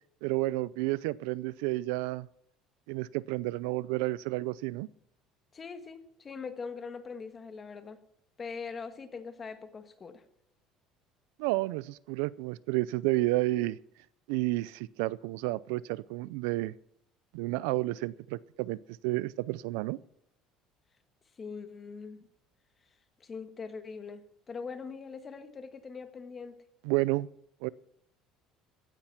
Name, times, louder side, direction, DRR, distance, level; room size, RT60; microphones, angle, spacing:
voice 1, 0.2-2.3 2.9-4.9 11.4-13.8 14.3-16.7 17.3-18.8 19.0-20.0 26.8-27.3 27.6-27.7, right 19 dB, 90° right, 20 dB, 0.4 m, -31 dB
voice 2, 5.5-8.0 8.4-10.2 21.4-22.2 23.2-26.5, left 5 dB, 25° left, 8 dB, 1.6 m, -42 dB
15.5 x 10.0 x 6.0 m, 0.73 s
cardioid pair, 130°, 0 cm